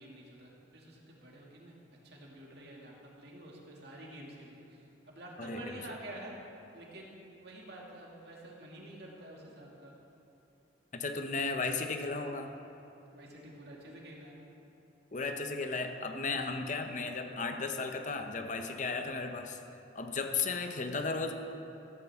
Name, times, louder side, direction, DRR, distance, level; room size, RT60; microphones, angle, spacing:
voice 1, 0.0-1.8 2.0-6.4 6.7-9.9 13.1-14.4, right 1 dB, 55° right, -3 dB, 2.4 m, -49 dB
voice 2, 5.4-5.7 10.9-12.5 15.1-19.6 19.9-21.3, left 4 dB, 40° left, 6 dB, 0.8 m, -35 dB
14.5 x 14.5 x 3.6 m, 3.0 s
head